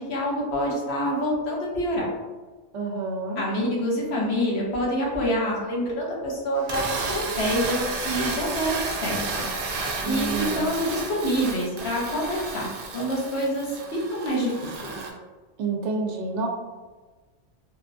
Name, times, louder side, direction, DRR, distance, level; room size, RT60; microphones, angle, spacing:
voice 1, 0.0-2.0 3.4-7.8 8.0-9.2 10.0-13.7 13.9-14.5 14.8-14.9, equal, 65° left, -2 dB, 1.0 m, -26 dB
voice 2, 2.7-3.4 10.0-10.7 15.6-16.5, right 4 dB, 90° right, 2 dB, 0.9 m, -28 dB
sound 1, 6.6-15.1, right 3 dB, 60° right, 0.6 m, -32 dB
3.8 x 2.3 x 2.5 m, 1.3 s
omnidirectional pair, 1.2 m